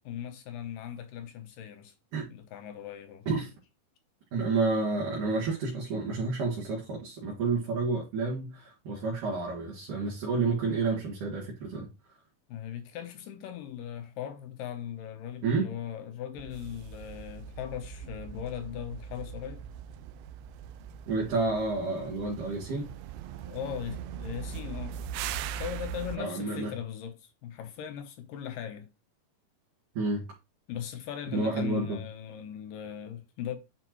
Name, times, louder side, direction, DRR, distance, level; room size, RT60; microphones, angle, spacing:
voice 1, 0.1-1.9 2.3-3.3 12.5-19.6 23.5-25.0 25.6-28.9 30.7-33.6, left 9 dB, 75° left, 2.3 m, -39 dB
voice 2, 4.3-11.9 15.4-15.7 21.1-22.9 26.2-26.7 29.9-30.2 31.3-32.0, right 3 dB, 60° right, 3.2 m, -30 dB
sound 1, 16.4-26.2, right 8 dB, 80° right, 2.0 m, -40 dB
10.0 x 4.4 x 3.0 m
omnidirectional pair, 4.3 m